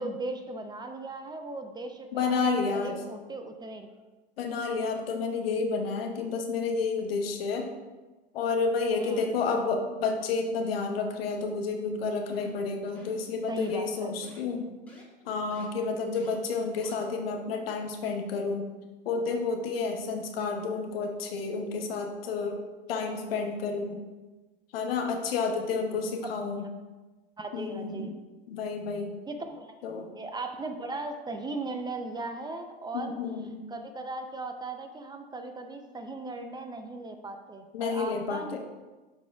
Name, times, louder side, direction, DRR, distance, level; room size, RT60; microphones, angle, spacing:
voice 1, 0.0-2.4 2.7-3.9 9.0-9.3 13.5-14.1 26.6-26.7 27.4-28.1 29.3-29.7 30.1-38.6, right 2 dB, 15° right, 6 dB, 0.5 m, -37 dB
voice 2, 2.1-3.0 4.4-7.7 8.3-14.7 15.2-18.7 19.0-22.6 22.9-24.0 24.7-26.6 27.5-28.2 28.5-29.2 29.8-30.1 32.9-33.5 37.7-38.6, left 4 dB, 80° left, 3 dB, 1.1 m, -30 dB
sound 1, 12.3-12.6 13.0-13.2 13.6-13.9 14.2-14.4 14.9-15.0 15.5-15.7 16.1-16.3 16.8-16.9, left 3 dB, 5° left, 1.9 m, -51 dB
11.0 x 4.1 x 2.3 m, 1.2 s
hypercardioid pair, 100°, 29 cm